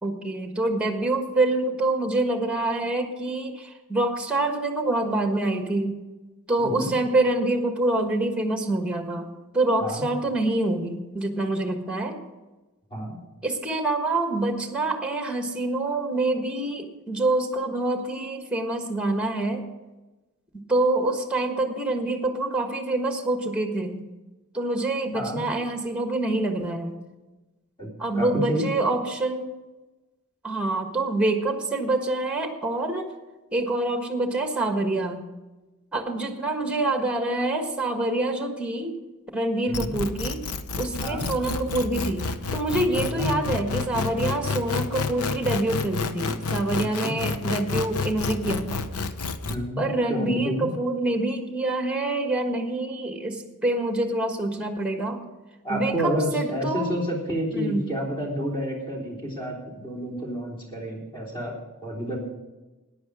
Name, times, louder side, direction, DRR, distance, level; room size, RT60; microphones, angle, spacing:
voice 1, 0.0-6.0 6.5-12.2 13.4-19.6 20.5-24.1 24.5-27.0 28.0-29.5 30.4-33.1 33.5-35.2 35.9-39.0 39.3-40.4 40.8-48.9 49.8-55.2 55.7-57.0 57.5-57.9, right 2 dB, 5° right, 5 dB, 1.4 m, -26 dB
voice 2, 6.6-6.9 9.8-10.0 12.9-13.2 25.1-25.4 27.8-27.9 28.1-28.7 39.7-39.9 41.0-41.3 43.2-43.3 47.0-47.1 49.4-49.8 50.1-50.7 55.6-61.5 61.8-62.2, equal, 20° left, -2 dB, 3.6 m, -29 dB
sound 1, 39.7-49.6, left 4 dB, 85° left, 0.8 m, -29 dB
14.0 x 10.0 x 4.9 m, 1.2 s
head